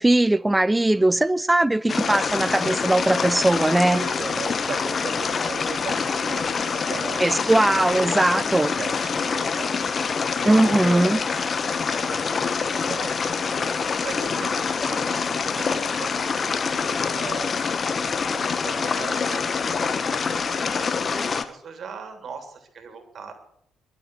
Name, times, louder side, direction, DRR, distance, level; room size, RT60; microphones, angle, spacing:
voice 1, 0.0-4.0 7.2-8.7 10.5-11.2, right 1 dB, 15° right, 0.7 m, -20 dB
voice 2, 0.7-1.1 3.9-7.2 7.7-8.1 8.3-9.7 10.0-11.6 11.9-23.4, right 5 dB, 50° right, 3.2 m, -38 dB
sound 1, 1.9-21.4, left 5 dB, 40° left, 1.2 m, -26 dB
22.0 x 7.7 x 7.8 m
figure-of-eight pair, 40°, 0 cm